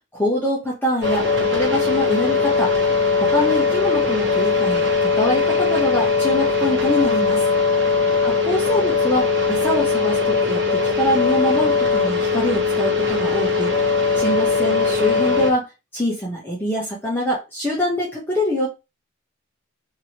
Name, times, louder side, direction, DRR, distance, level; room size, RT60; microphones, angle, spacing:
voice 1, 0.1-2.7 3.2-7.4 8.2-13.7 14.2-15.7 15.9-18.7, left 1 dB, 10° left, -5 dB, 0.7 m, -24 dB
sound 1, 1.0-15.5, left 4 dB, 55° right, 1.0 m, -20 dB
2.9 x 2.7 x 2.8 m, 0.26 s
head